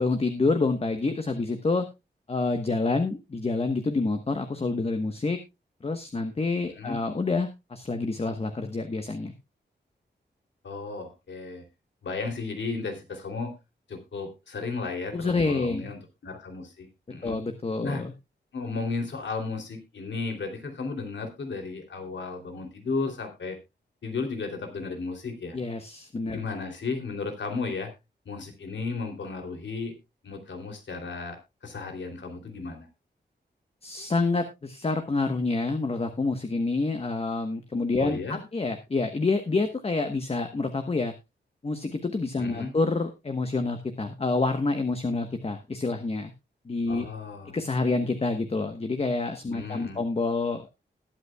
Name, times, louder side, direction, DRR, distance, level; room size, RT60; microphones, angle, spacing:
voice 1, 0.0-1.8 2.3-5.4 5.8-9.3 15.1-15.9 17.2-18.1 25.5-26.4 33.8-41.1 41.6-46.3 46.7-47.1 47.5-50.6, left 3 dB, 35° left, 7 dB, 1.1 m, -27 dB
voice 2, 10.6-11.6 12.0-13.5 13.9-17.4 17.8-18.1 18.5-23.6 24.0-25.6 26.3-27.9 28.2-30.0 30.2-31.4 31.6-32.9 38.0-38.4 42.4-42.7 46.9-47.6 49.5-50.0, left 4 dB, 85° left, 4 dB, 3.0 m, -34 dB
20.5 x 8.3 x 2.3 m, 0.24 s
wide cardioid pair, 135°, 18 cm